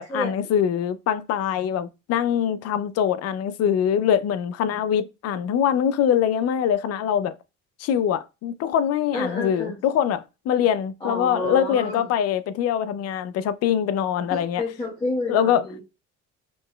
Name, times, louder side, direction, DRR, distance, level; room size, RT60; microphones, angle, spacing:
voice 1, 0.0-7.3 7.8-14.6 15.3-15.6, left 9 dB, 55° left, 0.5 m, -23 dB
voice 2, 9.1-9.8 11.0-12.1 14.3-15.8, left 2 dB, 15° left, 1.2 m, -29 dB
5.2 x 2.8 x 2.2 m
cardioid pair, 105°, 31 cm